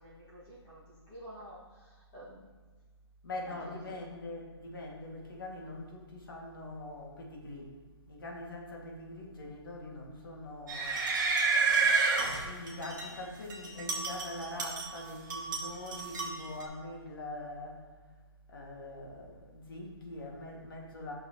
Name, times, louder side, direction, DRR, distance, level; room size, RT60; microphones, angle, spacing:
voice 1, 0.0-2.5 3.5-3.9 11.6-12.0, equal, 20° left, -7 dB, 1.6 m, -51 dB
voice 2, 3.2-7.7 8.1-11.1 12.4-17.8 18.5-21.1, left 2 dB, 50° left, -1 dB, 1.8 m, -43 dB
sound 1, 10.7-13.1 13.5-15.0 15.3-16.6, right 4 dB, 45° right, 1.4 m, -30 dB
10.5 x 6.0 x 2.9 m, 1.4 s
hypercardioid pair, 170°, 14 cm